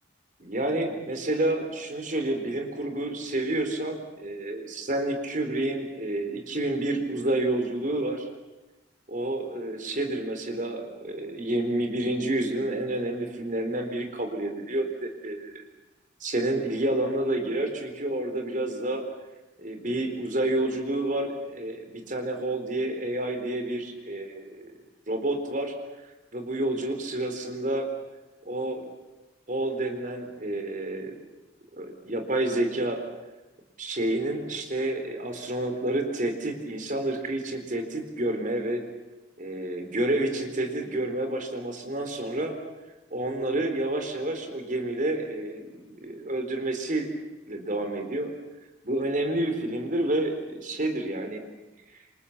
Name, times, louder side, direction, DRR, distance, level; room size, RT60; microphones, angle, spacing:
voice 1, 0.4-8.3 9.1-15.6 16.2-19.0 19.6-24.7 25.1-25.7 26.3-27.9 28.5-28.8 29.5-31.1 31.7-33.0 33.8-38.8 39.4-42.6 43.1-47.1 47.5-48.3 48.8-51.4, right 1 dB, 40° right, 6 dB, 3.9 m, -29 dB
27.5 x 27.5 x 7.3 m, 1.1 s
head